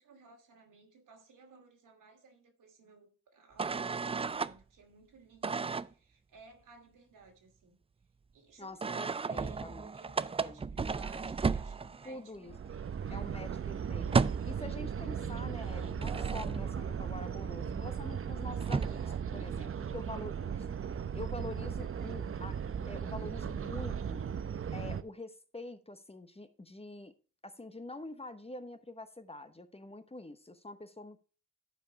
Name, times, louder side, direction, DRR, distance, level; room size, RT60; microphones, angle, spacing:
voice 1, 0.0-7.8 8.3-12.3 12.7-13.3 13.8-13.9 21.8-22.2, right 4 dB, 80° right, 2.7 m, -58 dB
sound 1, 3.6-4.5 5.4-5.9 8.8-12.2 12.5-12.7 12.9-14.6 15.6-16.8 18.3-18.4 18.6-19.2, right 5 dB, 20° right, 0.4 m, -34 dB
voice 2, 8.6-9.9 10.2-10.6 12.0-12.6 13.1-14.1 14.4-20.7 21.1-22.5 22.9-24.2 24.7-27.1 27.4-31.2, left 2 dB, 20° left, 0.9 m, -46 dB
sound 2, 12.5-25.0, right 7 dB, 45° right, 0.7 m, -37 dB
11.5 x 4.8 x 4.7 m
cardioid pair, 60°, 31 cm